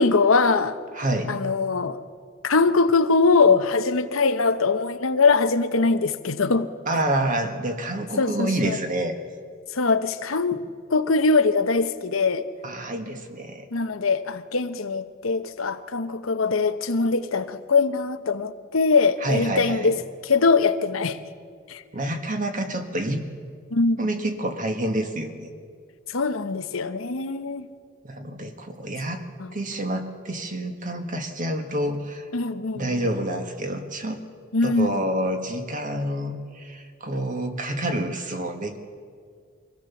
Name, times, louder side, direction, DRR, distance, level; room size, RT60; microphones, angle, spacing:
voice 1, 0.0-0.8 1.3-2.0 2.4-6.7 8.2-8.8 9.7-10.6 10.9-12.5 13.7-20.0 20.2-21.2 21.7-21.8 23.7-24.0 26.1-27.7 29.4-29.5 32.3-33.1 34.5-35.0, left 4 dB, 90° left, 10 dB, 0.9 m, -22 dB
voice 2, 0.9-1.4 6.9-9.2 12.6-13.7 19.2-19.9 21.9-23.2 24.0-25.6 28.0-29.2 29.5-32.3 32.8-34.2 34.6-38.8, right 1 dB, 40° right, 6 dB, 1.6 m, -28 dB
24.5 x 16.5 x 7.1 m, 2.1 s
head